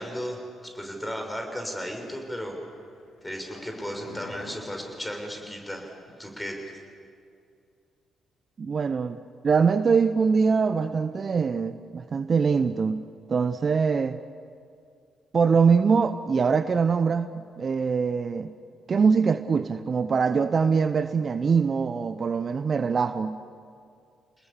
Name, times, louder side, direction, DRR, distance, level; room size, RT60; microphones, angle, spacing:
voice 1, 0.0-2.5 3.2-5.9 6.2-6.6, equal, 10° left, 3 dB, 6.6 m, -35 dB
sound 1, 2.4-6.1 6.4-6.5, left 4 dB, 70° left, 3.1 m, -47 dB
voice 2, 8.6-9.2 9.4-14.2 15.3-18.5 18.9-23.4, right 5 dB, 45° right, 12 dB, 0.8 m, -23 dB
30.0 x 20.0 x 7.2 m, 2.3 s
hypercardioid pair, 45°, 0 cm